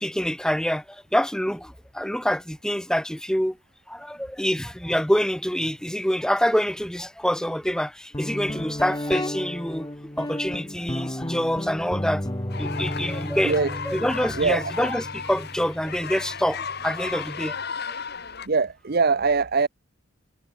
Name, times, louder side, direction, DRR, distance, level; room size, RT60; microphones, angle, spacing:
voice 1, 0.0-0.8 1.1-3.5 3.9-7.9 8.2-9.9 10.2-12.2 12.6-13.5 13.8-16.6 16.8-17.5, equal, 5° left, 2.1 m, -26 dB
Guitar, 8.1-17.6, left 1 dB, 20° left, 1.9 m, -33 dB
sound 1, 12.5-18.5, left 5 dB, 55° left, 2.5 m, -35 dB
voice 2, 14.4-14.7 18.5-19.7, right 4 dB, 50° right, 0.8 m, -22 dB
head